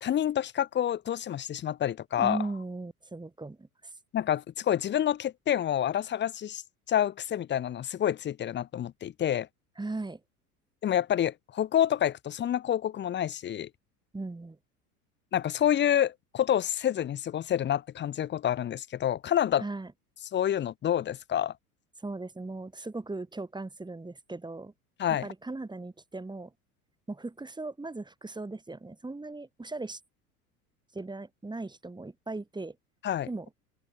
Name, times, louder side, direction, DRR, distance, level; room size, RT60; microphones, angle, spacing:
voice 1, 0.0-2.4 4.1-6.6 6.9-9.5 10.8-13.7 15.3-19.6 20.3-21.5 25.0-25.3 33.0-33.3, left 10 dB, 25° left, 1.0 m, -28 dB
voice 2, 2.2-3.9 9.8-10.2 14.1-14.6 19.6-19.9 22.0-24.7 25.2-26.5 27.1-30.0 30.9-32.8 33.3-33.5, right 2 dB, 10° right, 5.7 m, -38 dB
open air
figure-of-eight pair, 75°, 46 cm